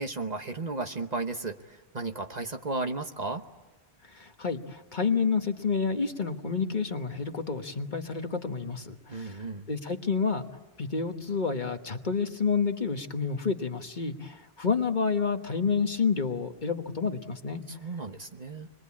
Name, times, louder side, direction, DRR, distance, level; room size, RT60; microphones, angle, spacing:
voice 1, 0.0-3.4 9.1-9.7 17.7-18.7, right 3 dB, 40° right, 6 dB, 1.2 m, -34 dB
voice 2, 4.0-10.5 10.8-17.6, left 5 dB, 45° left, 6 dB, 1.4 m, -29 dB
28.0 x 22.0 x 8.5 m, 1.2 s
omnidirectional pair, 1.1 m